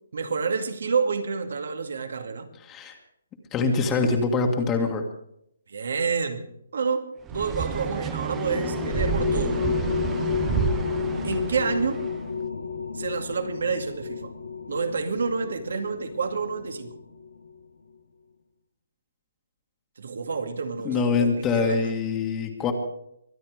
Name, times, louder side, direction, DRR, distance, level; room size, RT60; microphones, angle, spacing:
voice 1, 0.1-2.5 5.7-9.6 11.2-12.1 12.9-14.3 14.7-17.0 20.0-21.9, right 5 dB, 75° right, 7 dB, 2.2 m, -29 dB
voice 2, 2.6-2.9 3.5-5.0 20.9-22.7, left 4 dB, 20° left, 2 dB, 1.8 m, -24 dB
sound 1, 7.3-12.2, right 7 dB, 15° right, 0.9 m, -30 dB
sound 2, 7.8-17.5, left 6 dB, 90° left, 2.4 m, -31 dB
23.0 x 9.3 x 5.0 m, 0.74 s
hypercardioid pair, 155°, 0 cm